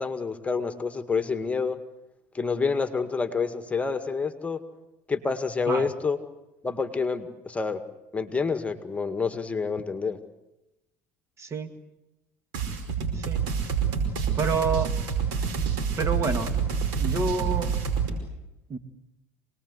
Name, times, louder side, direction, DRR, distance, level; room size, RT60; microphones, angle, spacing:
voice 1, 0.0-1.8 2.3-4.6 5.1-6.2 6.6-7.8 8.1-10.2, left 5 dB, 15° left, 9 dB, 2.0 m, -28 dB
voice 2, 11.4-11.7 13.1-13.4 14.4-14.9 16.0-16.6 17.0-17.7 18.7-18.8, right 4 dB, 35° right, 9 dB, 2.2 m, -28 dB
sound 1, 12.5-18.1, right 6 dB, 70° right, 5.1 m, -27 dB
26.0 x 19.5 x 8.2 m, 0.94 s
hypercardioid pair, 85°, 8 cm